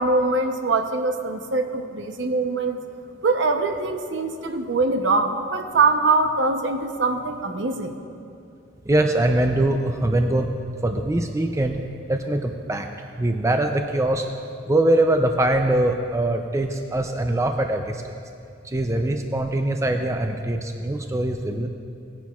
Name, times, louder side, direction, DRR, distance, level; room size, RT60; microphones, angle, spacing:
voice 1, 0.0-2.8 3.2-7.9, right 3 dB, 65° right, 6 dB, 0.7 m, -23 dB
voice 2, 8.9-10.5 10.8-11.8 12.1-12.9 13.2-14.3 14.7-18.1 18.6-21.7, right 1 dB, 15° right, 5 dB, 0.4 m, -22 dB
18.0 x 10.0 x 2.4 m, 2.5 s
head